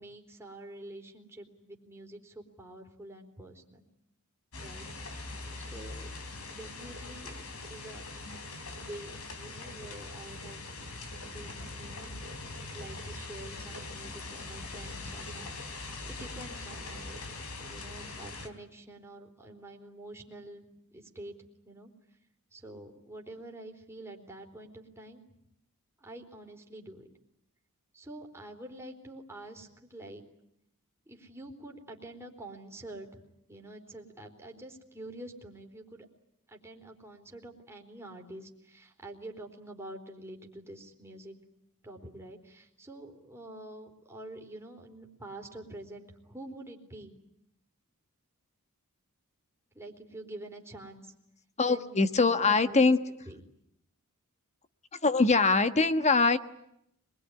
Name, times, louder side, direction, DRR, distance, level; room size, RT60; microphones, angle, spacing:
voice 1, 0.0-3.8 4.5-4.9 5.6-6.1 6.5-8.0 8.8-10.6 11.2-12.2 12.7-20.7 20.9-21.3 21.6-21.9 22.5-25.2 26.0-27.1 27.9-30.2 31.1-33.2 33.5-36.1 36.5-41.4 41.8-47.1 49.7-51.1 51.7-52.0 52.3-52.8 53.3-53.4, right 1 dB, 10° right, 1 dB, 3.9 m, -47 dB
sound 1, 4.5-18.5, left 2 dB, 80° left, 3.6 m, -42 dB
voice 2, 51.6-53.0 55.0-56.4, left 3 dB, 30° left, 11 dB, 1.3 m, -23 dB
26.0 x 21.5 x 9.9 m, 0.77 s
head